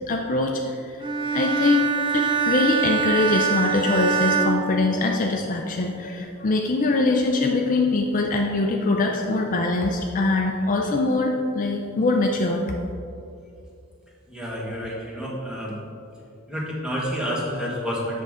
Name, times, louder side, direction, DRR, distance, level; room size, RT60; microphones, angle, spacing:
voice 1, 0.1-0.9 1.3-1.9 2.1-12.7, left 3 dB, 40° left, 1 dB, 0.5 m, -23 dB
Bowed string instrument, 1.0-5.5, right 7 dB, 25° right, 0.5 m, -24 dB
voice 2, 14.3-15.8 16.5-18.2, equal, 5° right, -5 dB, 1.3 m, -29 dB
7.9 x 6.3 x 3.7 m, 2.6 s
head